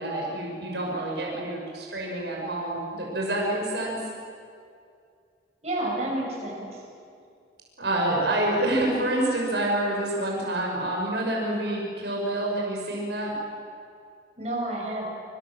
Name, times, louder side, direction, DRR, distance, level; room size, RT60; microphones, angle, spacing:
voice 1, 0.0-4.0 7.8-13.3, right 1 dB, 75° right, -2 dB, 6.2 m, -27 dB
voice 2, 5.6-6.8 14.4-15.0, right 1 dB, 40° right, -3 dB, 7.8 m, -30 dB
27.0 x 26.5 x 7.7 m, 2.3 s
head